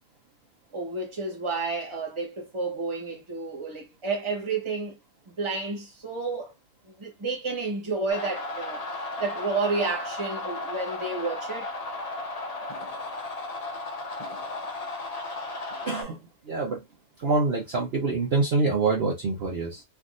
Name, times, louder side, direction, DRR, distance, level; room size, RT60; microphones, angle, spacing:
voice 1, 0.7-5.0 5.3-6.5 6.9-11.7, right 3 dB, 20° right, 1.0 m, -31 dB
sound 1, 8.1-16.0, left 2 dB, 40° left, 0.5 m, -35 dB
voice 2, 15.8-16.8 17.2-19.8, right 3 dB, 50° right, 0.9 m, -26 dB
3.5 x 2.6 x 2.5 m
omnidirectional pair, 1.6 m